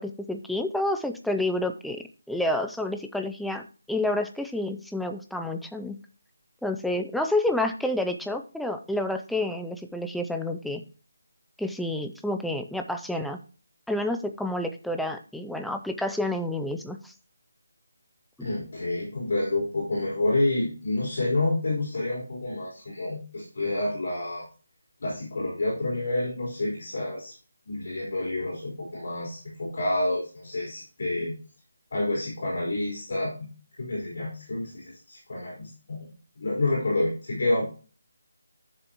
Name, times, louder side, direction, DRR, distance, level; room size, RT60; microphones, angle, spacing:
voice 1, 0.0-6.0 6.6-10.8 11.6-13.4 13.9-17.1 18.4-18.5, left 1 dB, ahead, 5 dB, 0.3 m, -29 dB
voice 2, 18.4-24.4 25.0-27.3 27.7-31.3 31.9-33.5 33.8-37.7, left 2 dB, 45° left, -4 dB, 4.1 m, -29 dB
10.5 x 6.9 x 3.0 m, 0.36 s
hypercardioid pair, 180°, 0 cm